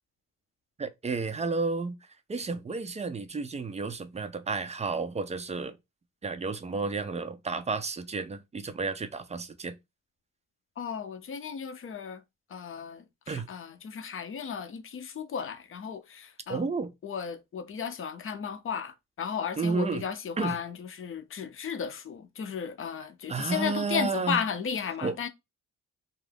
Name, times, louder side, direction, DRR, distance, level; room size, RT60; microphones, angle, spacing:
voice 1, 0.8-2.0 2.3-5.8 6.2-9.8 13.3-13.5 16.5-16.9 19.6-20.0 20.4-20.6 23.3-24.4 25.0-25.2, right 4 dB, 20° right, 0.4 m, -31 dB
voice 2, 10.8-12.2 12.5-16.7 17.0-25.3, left 7 dB, 40° left, 0.5 m, -34 dB
2.5 x 2.3 x 3.3 m
cardioid pair, 115°, 31 cm